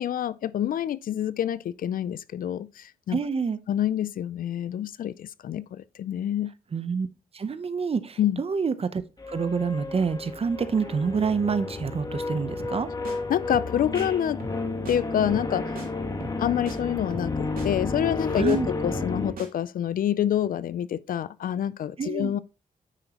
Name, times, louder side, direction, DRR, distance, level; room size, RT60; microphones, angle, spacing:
voice 1, 0.0-3.2 3.7-6.5 8.2-8.4 13.3-14.4 14.9-15.7 16.4-22.4, left 10 dB, 70° left, 0.4 m, -27 dB
voice 2, 3.1-3.6 6.7-7.1 7.3-9.0 9.3-12.9 18.4-18.7 22.0-22.3, right 5 dB, 40° right, 0.7 m, -27 dB
sound 1, 9.2-19.3, left 3 dB, 25° left, 1.4 m, -32 dB
sound 2, 12.6-12.8 13.0-13.2 13.5-13.7 13.9-14.1 14.4-14.6 14.9-15.0 15.3-15.5 15.8-15.9 16.2-16.4 16.7-16.8 17.1-17.3 17.6-17.7 18.0-18.6 18.9-19.1 19.4-19.5, right 4 dB, 80° right, 2.8 m, -39 dB
9.0 x 6.0 x 2.9 m
cardioid pair, 90°, 15 cm